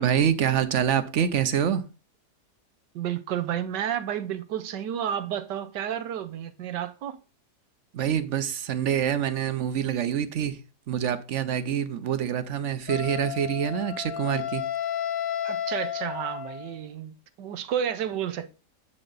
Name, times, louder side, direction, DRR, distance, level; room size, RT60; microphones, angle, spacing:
voice 1, 0.0-1.8 7.9-10.6 10.9-14.6, right 9 dB, 55° right, 1.0 m, -26 dB
voice 2, 2.9-7.2 15.4-18.5, right 9 dB, 90° right, 1.5 m, -31 dB
Wind instrument woodwind instrument, 12.9-16.9, left 10 dB, 80° left, 1.6 m, -32 dB
9.6 x 7.5 x 4.0 m
omnidirectional pair, 1.8 m